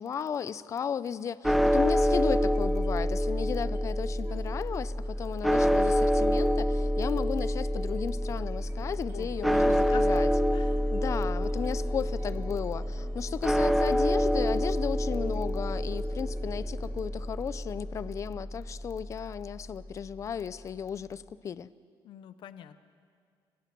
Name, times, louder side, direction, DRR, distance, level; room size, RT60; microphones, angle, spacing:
voice 1, 0.0-10.3 10.9-21.7, left 7 dB, 35° left, 17 dB, 0.6 m, -34 dB
sound 1, 1.4-19.7, equal, ahead, 0.7 m, -27 dB
sound 2, 2.4-3.0 3.3-19.9, right 3 dB, 30° right, 3.1 m, -51 dB
voice 2, 9.1-10.2 10.5-10.9 22.0-22.8, left 10 dB, 65° left, 12 dB, 0.9 m, -44 dB
28.5 x 25.0 x 6.1 m, 2.2 s
cardioid pair, 170°, 9 cm